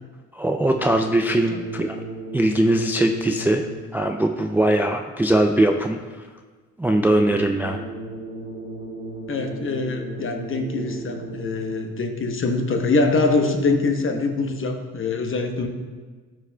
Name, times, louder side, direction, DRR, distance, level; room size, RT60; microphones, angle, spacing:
voice 1, 0.3-2.0 2.3-3.6 3.9-6.3 6.8-7.8, right 1 dB, 5° right, 4 dB, 0.3 m, -21 dB
sound 1, 0.6-4.1 7.0-12.1, right 2 dB, 25° right, 2.0 m, -36 dB
voice 2, 9.3-15.7, left 3 dB, 45° left, 4 dB, 1.0 m, -23 dB
12.5 x 4.8 x 2.2 m, 1.4 s
cardioid pair, 90°, 30 cm